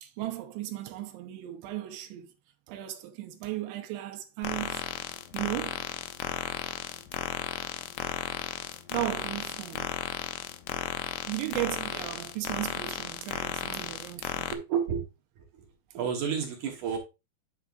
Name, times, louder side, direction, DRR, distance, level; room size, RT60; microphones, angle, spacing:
voice 1, 0.0-2.3 2.7-4.8 5.3-5.8 8.9-9.9 11.3-14.5, right 15 dB, 85° right, 3.2 m, -36 dB
sound 1, 4.4-14.5, left 11 dB, 80° left, 2.5 m, -35 dB
voice 2, 14.5-15.0 15.4-15.6 15.9-17.0, right 7 dB, 65° right, 2.0 m, -31 dB
9.2 x 6.6 x 2.4 m
omnidirectional pair, 5.1 m